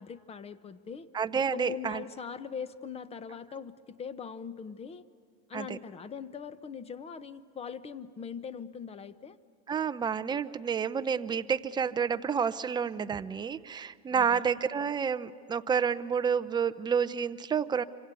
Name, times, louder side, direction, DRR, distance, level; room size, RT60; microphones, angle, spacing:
voice 1, 0.0-1.1 1.5-5.0 5.5-9.4 14.1-14.5, left 6 dB, 20° left, 15 dB, 1.0 m, -41 dB
voice 2, 1.1-2.0 5.5-5.8 9.7-17.8, right 7 dB, 15° right, 11 dB, 0.6 m, -29 dB
26.5 x 26.5 x 8.3 m, 2.3 s
supercardioid pair, 140°, 34 cm